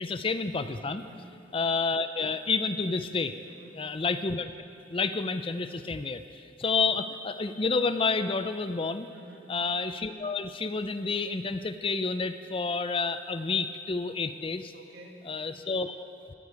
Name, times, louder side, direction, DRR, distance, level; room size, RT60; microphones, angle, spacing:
voice 1, 0.0-1.0 1.5-3.4 3.8-4.5 4.9-6.2 6.6-9.1 9.5-14.7 15.3-16.0, left 4 dB, 30° left, 11 dB, 0.5 m, -29 dB
voice 2, 1.0-1.5 3.4-3.9 9.1-9.6 14.7-15.4, right 1 dB, 60° right, 0 dB, 1.9 m, -50 dB
23.5 x 10.0 x 4.7 m, 2.6 s
head